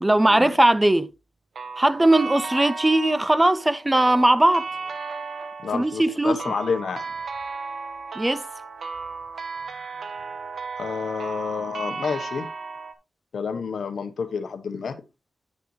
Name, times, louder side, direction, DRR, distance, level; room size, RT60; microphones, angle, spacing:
voice 1, 0.0-1.1 1.8-4.7 5.7-6.5 8.2-8.4, right 1 dB, 15° right, 0.4 m, -19 dB
sound 1, 1.6-12.9, right 4 dB, 65° right, 1.1 m, -35 dB
voice 2, 5.6-7.1 10.8-12.5 13.3-14.9, left 5 dB, 75° left, 1.0 m, -29 dB
9.5 x 6.7 x 3.1 m
wide cardioid pair, 120°, 0 cm